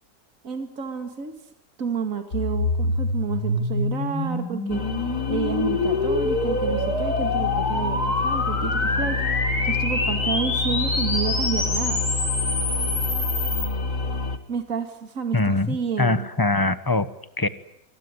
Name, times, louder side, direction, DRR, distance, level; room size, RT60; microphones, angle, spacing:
voice 1, 0.4-1.3 1.8-4.8 5.3-9.2 9.6-12.1 14.5-16.3, right 6 dB, 55° right, 7 dB, 2.6 m, -30 dB
sound 1, 2.3-13.7, left 2 dB, 75° left, 4.5 m, -26 dB
sound 2, 4.7-14.4, left 3 dB, 50° left, 2.0 m, -28 dB
voice 2, 15.3-17.1 17.4-17.5, left 2 dB, 15° left, 13 dB, 1.0 m, -22 dB
26.0 x 19.5 x 9.7 m, 0.78 s
omnidirectional pair, 1.7 m